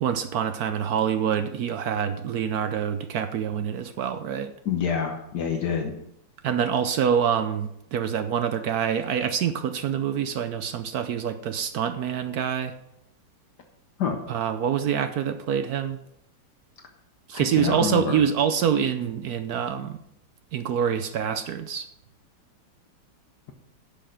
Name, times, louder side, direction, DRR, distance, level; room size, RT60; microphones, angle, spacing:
voice 1, 0.0-4.5 6.4-12.7 14.3-16.0 17.3-20.0 20.5-21.9, right 8 dB, 70° right, 10 dB, 1.0 m, -26 dB
voice 2, 4.6-6.0 14.0-14.2 17.3-18.2, left 7 dB, 65° left, 4 dB, 1.5 m, -27 dB
10.0 x 6.2 x 6.3 m, 0.78 s
omnidirectional pair, 2.0 m